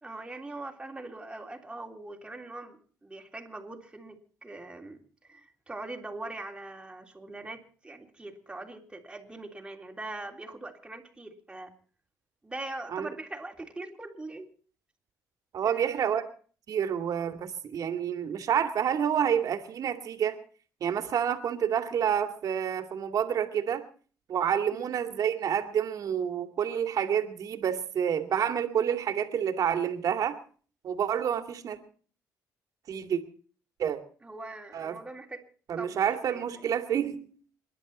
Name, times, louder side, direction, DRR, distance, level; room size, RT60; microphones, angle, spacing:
voice 1, 0.0-11.7 12.4-14.5 15.6-16.3 24.7-24.9 34.2-35.4 35.8-36.6, right 2 dB, 15° right, 3 dB, 3.4 m, -42 dB
voice 2, 15.5-16.2 16.7-20.4 20.8-23.9 24.3-30.4 30.8-31.8 32.9-33.2 33.8-34.0 34.7-35.0 35.7-37.3, right 8 dB, 60° right, 8 dB, 2.4 m, -28 dB
27.5 x 11.5 x 4.3 m, 0.43 s
cardioid pair, 95°, 7 cm